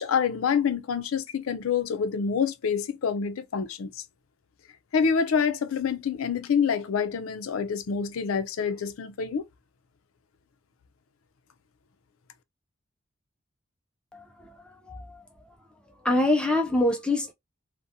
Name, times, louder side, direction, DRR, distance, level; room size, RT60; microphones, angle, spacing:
voice 1, 0.0-3.9 4.9-9.4, left 6 dB, 90° left, 0.4 m, -27 dB
voice 2, 14.1-15.5 16.0-17.3, left 1 dB, 5° left, 0.3 m, -26 dB
2.7 x 2.1 x 2.5 m
head